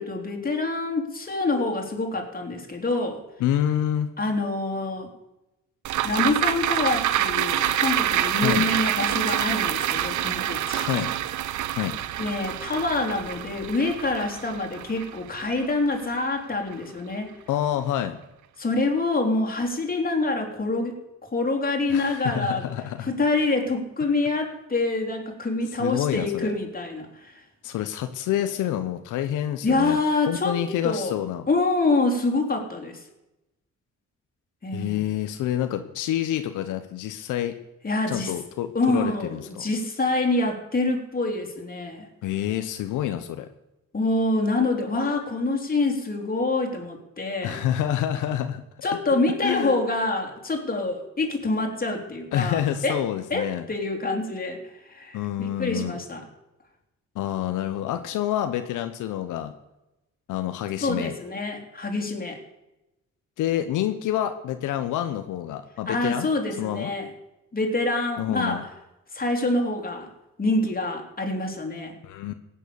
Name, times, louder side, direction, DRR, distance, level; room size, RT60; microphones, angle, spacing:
voice 1, 0.0-3.2 4.2-5.1 6.0-10.9 12.2-17.3 18.6-22.7 23.0-27.4 29.6-31.2 31.5-33.0 34.6-35.0 37.8-38.3 38.7-42.1 43.9-47.6 48.8-53.0 53.3-54.6 54.9-56.2 60.8-62.4 65.9-67.1 67.5-68.7 69.1-70.1 70.4-72.0, left 2 dB, 30° left, 2 dB, 3.4 m, -26 dB
voice 2, 3.4-4.1 8.4-8.7 10.7-11.1 11.8-12.0 17.5-18.2 21.9-23.1 25.8-26.5 27.6-30.0 30.3-31.5 34.7-37.6 38.1-39.6 42.2-43.5 47.4-49.0 49.4-49.8 52.3-53.7 55.1-56.0 57.1-59.5 60.3-61.1 63.4-66.3 66.6-66.9 68.2-68.6 72.0-72.3, left 11 dB, 85° left, 8 dB, 0.9 m, -27 dB
sound 1, 5.8-16.4 16.7-16.8, right 12 dB, 70° right, 0.7 m, -27 dB
16.5 x 9.2 x 6.9 m, 0.95 s
cardioid pair, 90°, 30 cm